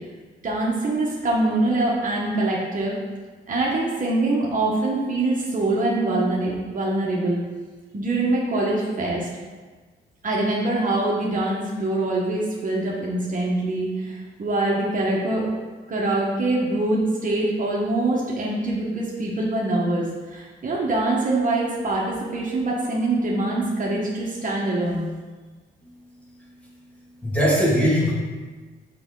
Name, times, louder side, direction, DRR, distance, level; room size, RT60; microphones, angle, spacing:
voice 1, 0.4-3.0 3.5-7.4 7.9-9.3 10.2-15.4 15.9-25.1, right 2 dB, 40° right, -4 dB, 1.3 m, -24 dB
voice 2, 25.8-26.7 27.2-28.1, equal, 5° left, -6 dB, 2.2 m, -22 dB
5.9 x 5.8 x 3.9 m, 1.4 s
cardioid pair, 90°, 20 cm